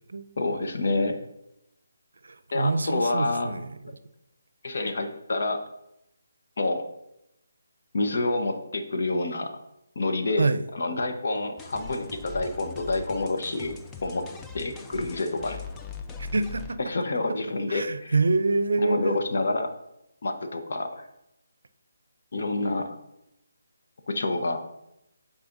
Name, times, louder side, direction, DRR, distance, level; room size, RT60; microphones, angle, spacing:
voice 1, 0.4-1.2 2.5-3.6 4.6-5.6 6.6-6.9 7.9-9.5 9.9-13.8 14.0-14.3 14.5-15.6 16.9-18.1 18.8-19.7 20.2-21.0 22.3-23.0 24.1-24.6, left 2 dB, 60° left, 5 dB, 0.9 m, -28 dB
voice 2, 2.2-3.7 10.4-10.6 16.3-16.8 17.7-19.2, right 3 dB, 75° right, 12 dB, 0.5 m, -26 dB
sound 1, 11.6-16.8, left 4 dB, 10° left, 0.4 m, -40 dB
9.7 x 4.2 x 2.6 m, 0.83 s
figure-of-eight pair, 155°, 0 cm